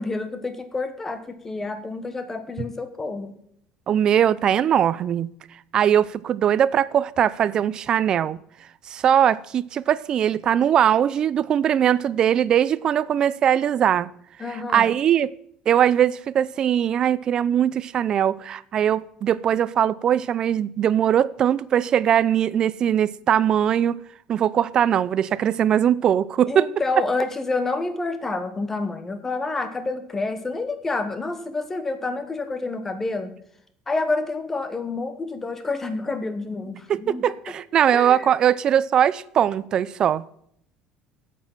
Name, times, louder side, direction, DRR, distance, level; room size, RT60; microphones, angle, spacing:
voice 1, 0.0-3.4 14.4-14.9 26.5-33.4 33.9-37.3 37.9-38.3, left 3 dB, 15° left, 1.3 m, -28 dB
voice 2, 3.9-5.3 5.7-8.4 8.9-14.1 14.5-15.3 15.7-24.0 24.3-26.8 36.9-40.2, right 9 dB, 35° right, 0.5 m, -21 dB
8.7 x 8.3 x 7.4 m
cardioid pair, 160°, 2 cm